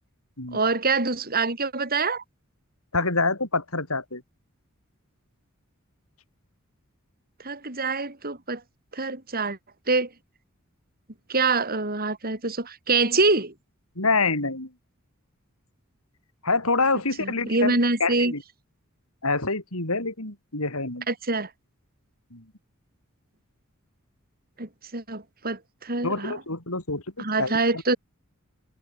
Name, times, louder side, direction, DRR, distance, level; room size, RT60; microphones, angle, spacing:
voice 1, 0.5-2.2 7.4-8.6 8.9-9.6 9.9-10.1 11.3-13.5 17.2-18.3 21.1-21.5 24.6-26.4 27.2-28.0, right 3 dB, 45° right, 6.6 m, -25 dB
voice 2, 2.9-4.2 14.0-14.7 16.4-18.4 19.2-21.1 22.3-22.4 26.0-27.5, left 3 dB, 80° left, 6.9 m, -26 dB
head